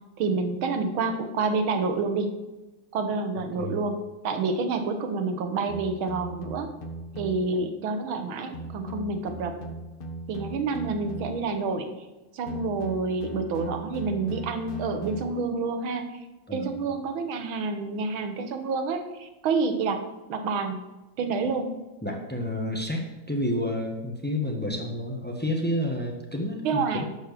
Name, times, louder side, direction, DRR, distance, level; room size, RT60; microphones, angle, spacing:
voice 1, 0.2-2.3 2.9-4.0 4.2-6.7 7.2-9.5 10.3-11.9 12.3-16.2 16.5-20.0 20.3-20.8 21.2-21.8 26.6-27.1, right 4 dB, 80° right, 7 dB, 1.8 m, -28 dB
sound 1, 5.7-7.6 8.5-11.6 12.5-15.6, right 1 dB, 60° left, 0.5 m, -39 dB
voice 2, 16.5-17.0 22.0-27.0, left 1 dB, 10° left, 1 dB, 0.6 m, -30 dB
11.5 x 4.5 x 6.7 m, 1.1 s
omnidirectional pair, 2.2 m